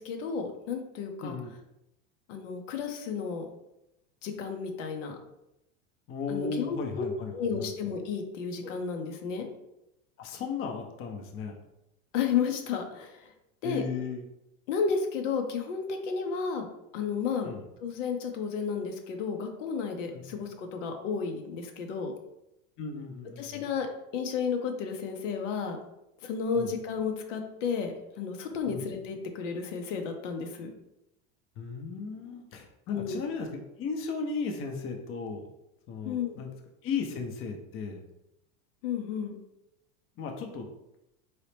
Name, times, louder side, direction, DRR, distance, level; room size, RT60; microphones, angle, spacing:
voice 1, 0.0-1.4 2.3-3.5 4.2-5.2 6.3-7.1 7.3-9.5 12.1-13.2 13.6-13.8 14.7-16.7 16.9-17.5 17.8-22.1 23.4-23.9 24.1-25.8 26.2-30.7 32.9-33.2 36.0-36.4 38.8-39.3, left 6 dB, 85° left, 4 dB, 0.8 m, -32 dB
voice 2, 1.2-1.5 6.1-7.3 7.6-7.7 10.2-11.5 13.6-14.2 17.4-17.6 20.1-20.4 22.8-23.6 26.5-26.7 28.7-28.8 31.6-35.5 35.9-36.5 36.8-38.0 40.2-40.7, left 5 dB, 35° left, 3 dB, 0.7 m, -35 dB
3.9 x 2.9 x 3.3 m, 0.86 s
supercardioid pair, 125°, 36 cm